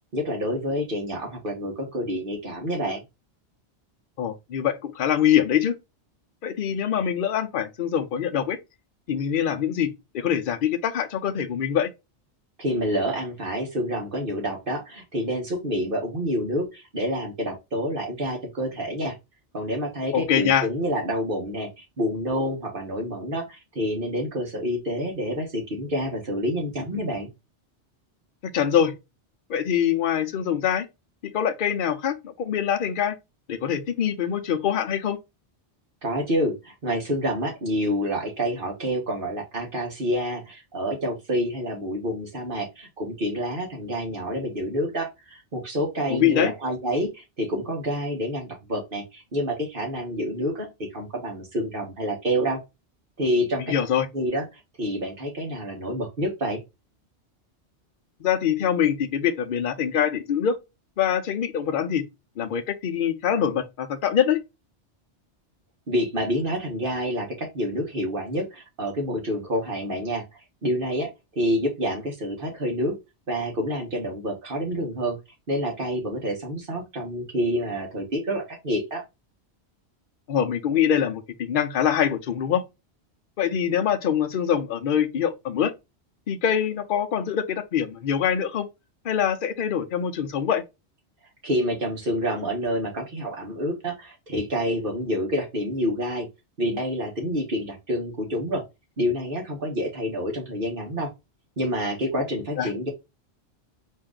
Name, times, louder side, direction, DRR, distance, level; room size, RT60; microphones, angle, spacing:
voice 1, 0.1-3.0 12.6-19.1 19.5-27.3 36.0-50.7 50.9-52.6 53.2-53.7 54.1-54.4 54.8-56.6 65.9-70.2 70.6-71.1 71.3-73.0 73.3-75.2 75.5-79.0 91.4-96.3 96.6-98.6 99.0-101.1 101.6-102.9, equal, 50° right, 1.5 m, -28 dB
voice 2, 4.2-5.7 6.4-8.6 9.1-11.9 20.1-20.7 28.5-28.9 29.5-30.9 31.3-33.2 33.5-35.2 46.1-46.5 53.6-54.1 58.2-60.6 61.0-62.0 62.4-64.4 80.3-82.6 83.4-85.7 86.3-88.7 89.0-90.6 102.6-102.7, left 9 dB, 55° left, 0.7 m, -24 dB
4.4 x 2.6 x 3.7 m
omnidirectional pair, 1.2 m